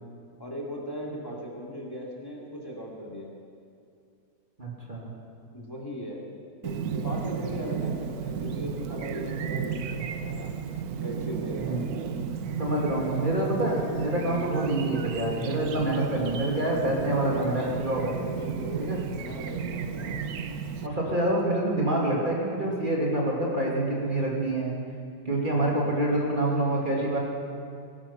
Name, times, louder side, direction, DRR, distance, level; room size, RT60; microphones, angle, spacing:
voice 1, 0.4-3.4 5.5-6.3 6.6-10.5 11.0-11.8 14.1-14.5 16.9-17.6 18.0-20.3 25.5-25.9, equal, 15° left, -3 dB, 2.5 m, -38 dB
voice 2, 4.6-5.1 11.5-11.8 12.6-18.2 18.8-19.0 20.8-24.7 25.2-27.2, right 1 dB, 30° right, -3 dB, 2.8 m, -27 dB
Chirp tweet, 6.6-20.9, right 7 dB, 65° right, 1.2 m, -33 dB
20.5 x 12.0 x 5.8 m, 2.3 s
omnidirectional pair, 1.8 m